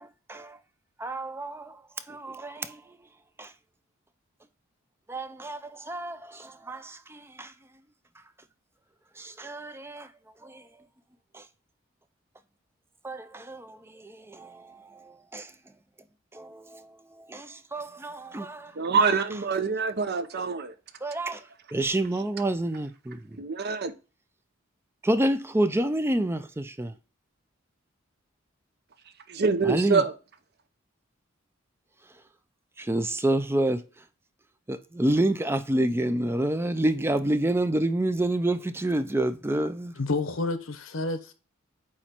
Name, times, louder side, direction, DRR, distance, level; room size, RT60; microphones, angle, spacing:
voice 1, 0.0-0.6 1.0-1.8 2.1-2.8 3.4-3.5 5.1-7.5 9.2-10.1 10.4-10.6 11.3-11.4 13.0-15.5 16.3-18.7 21.0-21.4 21.7-23.4 25.0-26.9 29.6-30.0 32.8-33.8 34.7-39.9, right 1 dB, 10° right, 0.4 m, -28 dB
voice 2, 18.8-20.7 23.4-23.9 29.3-30.1, right 4 dB, 55° right, 0.7 m, -25 dB
voice 3, 40.0-41.3, left 2 dB, 75° left, 1.0 m, -29 dB
8.6 x 3.0 x 4.3 m
head